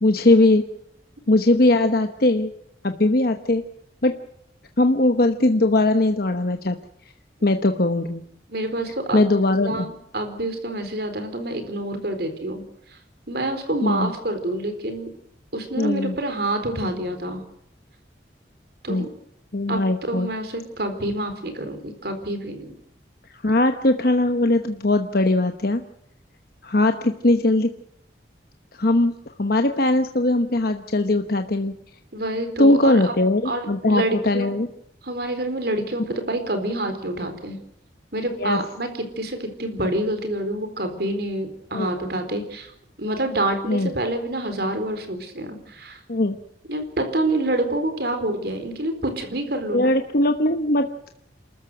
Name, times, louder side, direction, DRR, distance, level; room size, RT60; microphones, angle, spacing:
voice 1, 0.0-0.6 1.3-2.5 2.8-3.6 4.0-4.2 4.8-6.8 7.4-8.2 9.1-9.9 13.8-14.1 15.8-16.1 18.9-19.1 19.5-20.3 23.4-25.8 26.6-27.7 28.8-31.7 32.6-34.7 38.4-38.6 41.7-42.1 43.7-43.9 46.1-46.4 49.7-51.1, left 2 dB, 55° left, 6 dB, 1.1 m, -20 dB
voice 2, 8.5-9.3 9.6-12.6 13.3-15.1 15.5-17.4 18.8-19.1 19.7-19.8 20.1-22.7 32.1-33.1 33.4-34.5 35.0-37.6 38.1-42.7 43.0-46.0 46.7-49.9, right 1 dB, 60° right, 7 dB, 4.2 m, -27 dB
28.5 x 14.0 x 8.0 m, 0.76 s
head